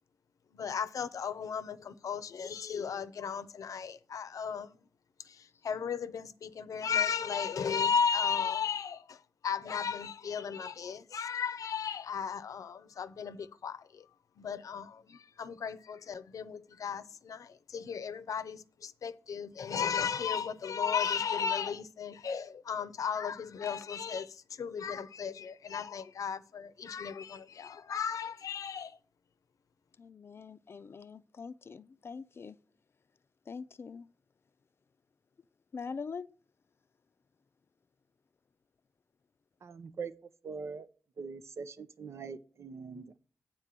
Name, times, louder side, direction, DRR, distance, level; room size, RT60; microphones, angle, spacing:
voice 1, 0.5-4.7 5.3-14.1 14.4-29.0, left 6 dB, 90° left, 0.7 m, -35 dB
voice 2, 30.0-32.6 33.5-34.1 35.7-36.3, left 5 dB, 45° left, 0.5 m, -43 dB
voice 3, 39.6-40.1 40.4-40.9 41.2-43.2, right 5 dB, 55° right, 0.7 m, -42 dB
9.4 x 4.5 x 7.5 m
wide cardioid pair, 125°, 6 cm